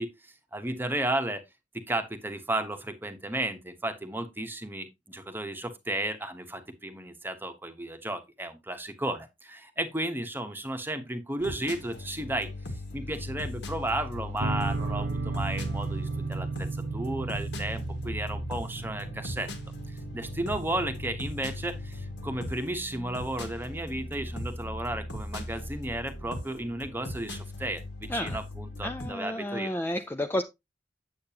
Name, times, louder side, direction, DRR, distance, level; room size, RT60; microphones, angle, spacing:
voice 1, 0.0-1.4 1.7-12.5 12.9-19.5 19.9-29.7, right 1 dB, 10° right, 1.0 m, -34 dB
sound 1, 11.4-29.1, left 1 dB, 75° left, 1.9 m, -38 dB
sound 2, 14.4-23.4, right 4 dB, 85° right, 0.9 m, -36 dB
voice 2, 28.8-30.4, left 1 dB, 10° left, 0.4 m, -31 dB
8.6 x 7.8 x 2.8 m
head